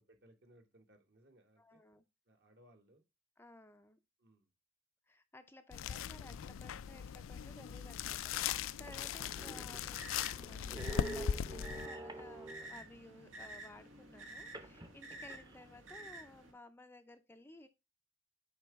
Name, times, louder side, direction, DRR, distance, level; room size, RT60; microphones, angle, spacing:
voice 1, 0.0-1.8 2.3-3.0 4.2-4.5, right 1 dB, 60° right, 1.5 m, -65 dB
voice 2, 1.6-2.0 3.4-4.0 5.1-17.7, left 2 dB, 10° left, 0.4 m, -57 dB
sound 1, 5.7-11.9, left 8 dB, 85° left, 0.4 m, -39 dB
sound 2, 7.8-7.9 8.5-8.6 8.8-12.9 14.5-15.6, right 2 dB, 20° right, 0.7 m, -48 dB
sound 3, 9.4-16.5, right 1 dB, 90° right, 1.9 m, -51 dB
7.5 x 4.8 x 3.5 m
head